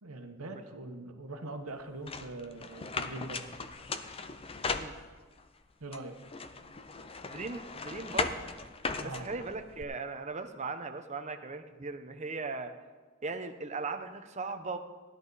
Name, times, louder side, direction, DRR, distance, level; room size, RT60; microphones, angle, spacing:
voice 1, 0.0-3.4 5.8-6.2 9.0-9.3, right 2 dB, 85° right, 6 dB, 1.3 m, -42 dB
sound 1, 2.1-5.4 5.9-9.8, left 4 dB, 25° left, 0.6 m, -38 dB
voice 2, 7.3-8.3 9.0-12.7 13.2-14.8, right 3 dB, 35° right, 7 dB, 0.8 m, -38 dB
16.0 x 11.0 x 4.1 m, 1.4 s
head